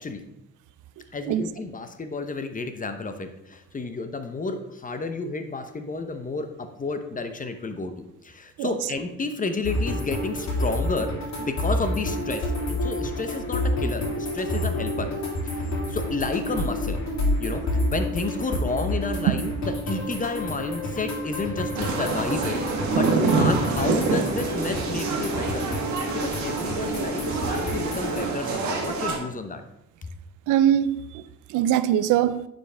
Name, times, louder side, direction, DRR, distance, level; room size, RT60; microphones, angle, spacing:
voice 1, 1.1-11.1 11.4-15.1 15.4-17.0 17.4-17.6 17.9-22.6 22.9-25.7 26.1-29.6 30.0-30.1, left 3 dB, 25° left, 0.9 m, -31 dB
sound 1, 9.6-28.3, left 1 dB, 65° left, 2.8 m, -29 dB
sound 2, 21.8-29.2, right 4 dB, 70° right, 1.5 m, -26 dB
voice 2, 30.5-31.2 31.5-32.5, right 11 dB, 85° right, 0.5 m, -22 dB
9.4 x 5.3 x 3.4 m
cardioid pair, 90°, 30 cm